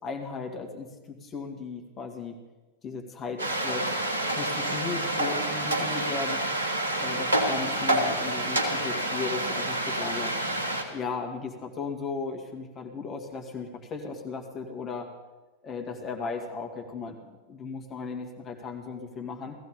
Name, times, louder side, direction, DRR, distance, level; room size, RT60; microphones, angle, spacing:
voice 1, 0.0-2.4 2.8-4.0 4.3-6.4 7.0-10.3 10.9-15.1 15.6-19.6, left 4 dB, 25° left, 3 dB, 2.2 m, -36 dB
sound 1, 3.4-10.8, right 1 dB, 75° right, 1.8 m, -28 dB
17.5 x 15.0 x 5.4 m, 1.1 s
figure-of-eight pair, 90°, 0 cm